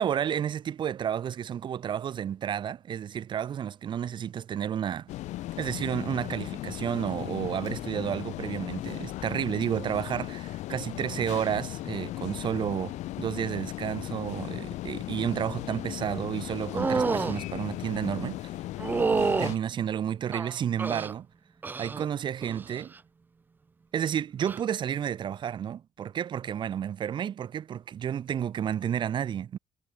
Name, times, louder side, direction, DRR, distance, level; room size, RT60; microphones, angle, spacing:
voice 1, 0.0-5.1 5.6-18.5 19.4-21.3 21.8-22.9 23.9-29.6, right 9 dB, 40° right, 2.2 m, -31 dB
sound 1, 5.1-19.6, left 16 dB, 90° left, 2.2 m, -37 dB
sound 2, 16.7-17.4 18.8-19.6 20.3-21.1 21.6-22.1 22.4-22.9 24.4-24.6, right 4 dB, 15° right, 0.4 m, -28 dB
cardioid pair, 170°, 12 cm